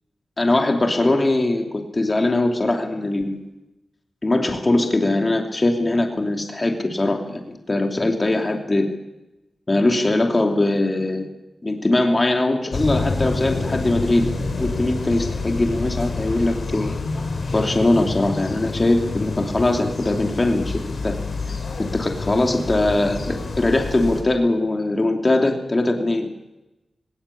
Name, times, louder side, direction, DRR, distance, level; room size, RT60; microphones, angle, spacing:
voice 1, 0.4-3.4 4.2-8.9 9.7-11.3 11.6-17.0 17.5-21.2 21.9-26.3, left 2 dB, 30° left, 3 dB, 2.9 m, -21 dB
sound 1, 12.7-24.2, left 3 dB, 65° left, 4.7 m, -28 dB
19.5 x 18.5 x 8.5 m, 0.99 s
cardioid pair, 70°, 0 cm